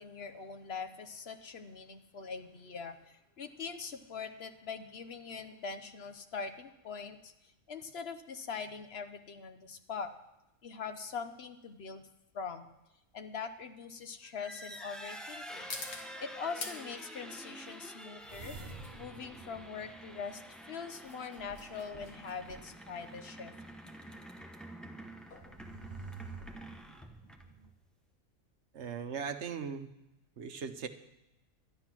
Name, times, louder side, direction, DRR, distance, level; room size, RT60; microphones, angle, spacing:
voice 1, 0.0-10.1 10.6-12.0 12.3-12.7 13.1-15.7 16.2-18.6 18.9-20.4 20.7-23.5, left 5 dB, 55° left, 8 dB, 1.0 m, -42 dB
sound 1, 10.1-26.7, left 4 dB, 70° left, 1.7 m, -51 dB
sound 2, 14.2-27.7, right 1 dB, ahead, 0.7 m, -48 dB
sound 3, 18.2-20.7 21.4-23.0 23.6-23.7 25.2-27.7, right 3 dB, 40° right, 1.0 m, -50 dB
voice 2, 28.7-29.9 30.4-30.9, right 6 dB, 60° right, 9 dB, 1.0 m, -38 dB
12.0 x 10.0 x 6.0 m, 0.90 s
omnidirectional pair, 1.4 m